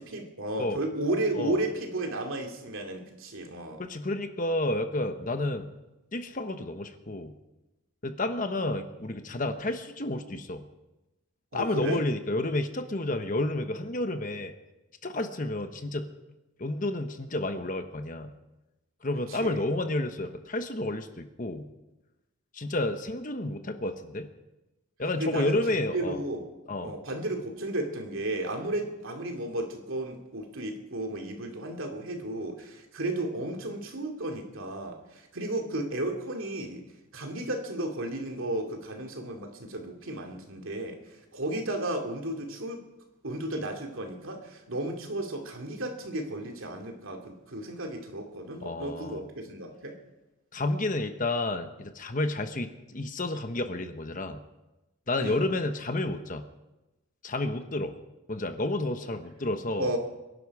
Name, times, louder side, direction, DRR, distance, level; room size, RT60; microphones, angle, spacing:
voice 1, 0.0-3.8 11.5-12.0 19.3-19.6 25.2-26.5 26.8-36.8 37.1-41.0 41.3-42.8 43.2-50.0 55.2-55.4 59.8-60.0, right 1 dB, 70° right, 2 dB, 2.6 m, -33 dB
voice 2, 3.8-5.7 6.1-7.3 8.0-10.6 11.5-14.5 15.0-16.1 16.6-18.3 19.0-21.7 22.5-24.3 25.0-26.2 26.7-26.9 48.6-49.2 50.5-54.4 55.1-56.4 57.2-57.9 58.3-59.9, left 2 dB, 35° left, 8 dB, 1.1 m, -30 dB
25.0 x 11.5 x 4.9 m, 1.0 s
head